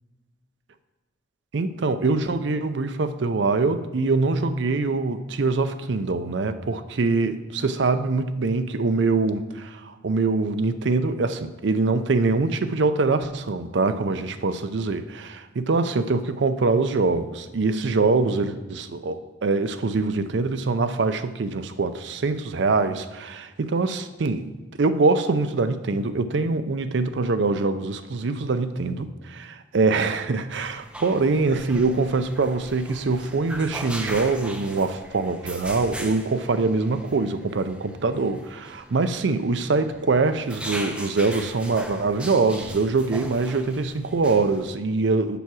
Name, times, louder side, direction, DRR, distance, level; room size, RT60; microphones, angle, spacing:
voice 1, 1.5-24.5 24.8-45.4, right 3 dB, 65° right, 10 dB, 0.5 m, -24 dB
sound 1, 30.5-44.7, right 1 dB, 5° right, 0.5 m, -39 dB
6.9 x 4.7 x 6.1 m, 1.2 s
head